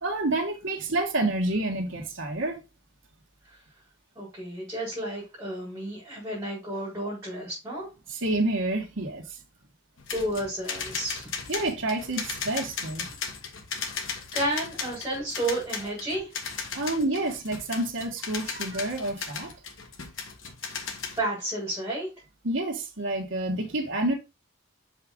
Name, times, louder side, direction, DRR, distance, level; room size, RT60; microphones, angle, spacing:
voice 1, 0.0-2.6 8.1-9.2 11.5-13.0 16.7-19.5 22.4-24.1, right 2 dB, 75° right, 1.7 m, -28 dB
voice 2, 4.1-7.9 10.1-11.3 13.9-14.1 14.3-16.3 20.6-20.8 21.1-22.1, right 1 dB, 15° right, 4.6 m, -32 dB
sound 1, 10.0-21.2, left 5 dB, 80° left, 1.6 m, -36 dB
6.1 x 5.6 x 3.7 m
head